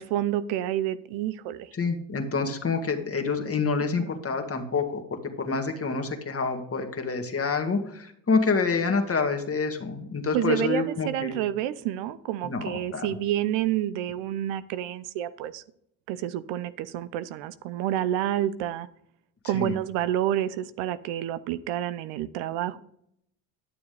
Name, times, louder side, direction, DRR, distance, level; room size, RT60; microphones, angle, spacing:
voice 1, 0.0-1.7 10.3-15.6 16.1-18.9 19.4-22.8, right 12 dB, 80° right, 15 dB, 0.6 m, -29 dB
voice 2, 1.7-11.4 12.4-13.1 19.4-19.8, left 4 dB, 30° left, 5 dB, 1.8 m, -27 dB
11.5 x 7.0 x 3.4 m, 0.70 s
supercardioid pair, 65°, 44 cm